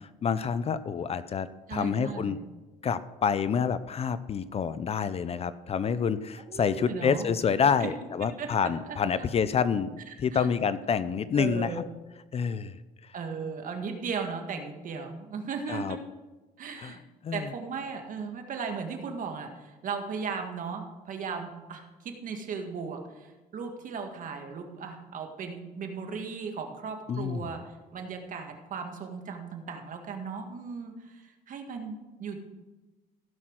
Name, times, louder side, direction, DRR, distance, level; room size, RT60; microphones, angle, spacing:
voice 1, 0.2-2.4 2.8-11.7 12.3-12.7 15.7-16.0 16.8-17.0 17.2-17.5 27.1-27.4, left 6 dB, 35° left, 15 dB, 0.5 m, -28 dB
voice 2, 1.7-2.4 6.5-7.3 7.8-7.9 8.4-9.3 10.1-10.5 11.3-11.9 13.1-16.0 16.6-17.0 17.3-23.3 23.5-27.6 27.9-32.4, right 5 dB, 50° right, 4 dB, 1.8 m, -37 dB
15.5 x 5.9 x 6.3 m, 1.1 s
cardioid pair, 110°, 17 cm